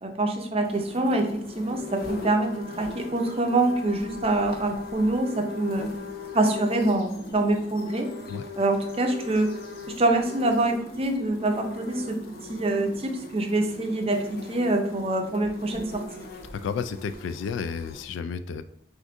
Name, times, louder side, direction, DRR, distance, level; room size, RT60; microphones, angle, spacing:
voice 1, 0.0-5.9 6.3-8.1 8.6-9.5 10.0-12.2 12.5-16.0, right 2 dB, 30° right, 4 dB, 0.5 m, -25 dB
sound 1, 0.6-18.0, left 4 dB, 55° left, 0.7 m, -40 dB
voice 2, 16.5-18.6, left 6 dB, 80° left, 12 dB, 0.3 m, -32 dB
6.0 x 2.6 x 2.5 m, 0.72 s
head